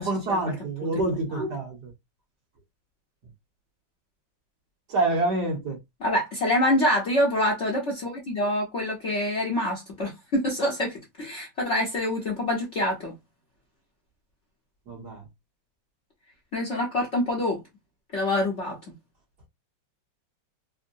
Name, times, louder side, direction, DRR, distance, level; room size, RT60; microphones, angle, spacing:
voice 1, 0.0-1.9 4.9-5.8 14.9-15.2, right 2 dB, 60° right, 1.5 m, -27 dB
voice 2, 6.0-13.1 16.5-17.6 18.1-18.8, left 1 dB, 50° left, 0.9 m, -26 dB
3.6 x 2.1 x 2.5 m
omnidirectional pair, 2.2 m